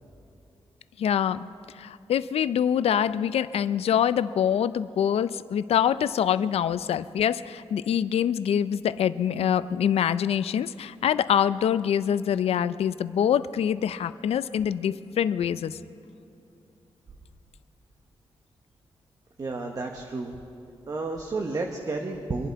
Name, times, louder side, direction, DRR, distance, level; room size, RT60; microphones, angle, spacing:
voice 1, 1.0-1.4 1.8-15.8, left 9 dB, 75° left, 15 dB, 0.4 m, -25 dB
voice 2, 19.4-20.4 20.9-22.5, right 3 dB, 35° right, 2 dB, 1.0 m, -31 dB
25.0 x 11.0 x 4.6 m, 2.6 s
wide cardioid pair, 140°, 10 cm